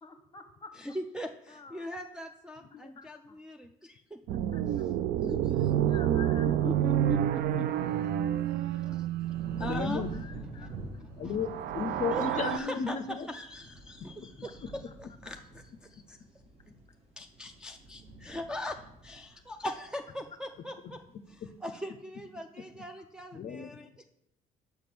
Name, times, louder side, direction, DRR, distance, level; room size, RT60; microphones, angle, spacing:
voice 1, 0.0-0.7 1.5-1.9 3.0-3.4 4.3-4.9 5.9-7.0 10.1-11.0 14.9-15.0, left 5 dB, 25° left, 8 dB, 0.9 m, -50 dB
voice 2, 0.8-4.4 5.2-5.7 6.4-7.7 8.5-10.0 10.6-10.7 11.0-11.3 12.0-15.6 15.9-16.2 17.2-21.0 21.3-24.0, equal, 5° right, 3 dB, 0.4 m, -41 dB
voice 3, 2.6-2.9 9.6-10.1 11.2-13.3 14.2-14.3 21.4-21.5 23.3-23.8, left 6 dB, 45° left, 9 dB, 0.5 m, -34 dB
sound 1, 4.3-10.3 11.3-12.6, right 11 dB, 70° right, 0.4 m, -29 dB
sound 2, 9.3-20.6 21.0-21.5, right 2 dB, 40° right, 1.2 m, -48 dB
5.8 x 5.2 x 5.9 m, 0.80 s
cardioid pair, 110°, 17 cm